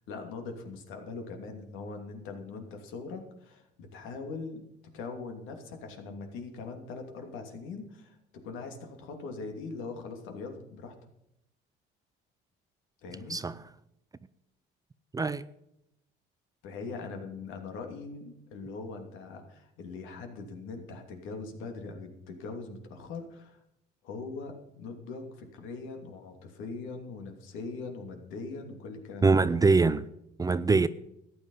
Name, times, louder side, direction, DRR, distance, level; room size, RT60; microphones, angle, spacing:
voice 1, 0.1-4.6 4.9-8.2 8.4-10.9 13.0-13.4 16.6-23.6 24.0-29.4, left 4 dB, 75° left, 2.8 m, -41 dB
voice 2, 13.3-13.6 15.1-15.4 29.2-30.1 30.4-30.9, right 4 dB, 15° right, 0.5 m, -23 dB
14.0 x 10.0 x 5.6 m
cardioid pair, 105°, 21 cm